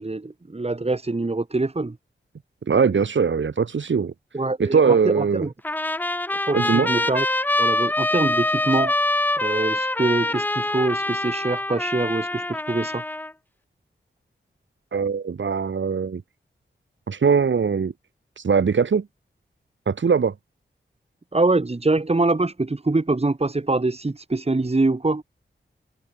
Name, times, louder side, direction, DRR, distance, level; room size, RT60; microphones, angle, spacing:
voice 1, 0.0-2.0 4.3-5.5 6.4-7.3 7.6-9.0 9.4-13.0 21.3-25.2, right 2 dB, 30° right, 3.4 m, -24 dB
voice 2, 2.7-4.1 4.6-5.5 6.5-6.9 14.9-16.2 17.1-17.9 18.4-19.1 19.9-20.3, right 6 dB, 75° right, 2.5 m, -21 dB
Trumpet, 5.6-13.3, left 1 dB, 10° left, 0.5 m, -24 dB
wide cardioid pair, 75°, 19 cm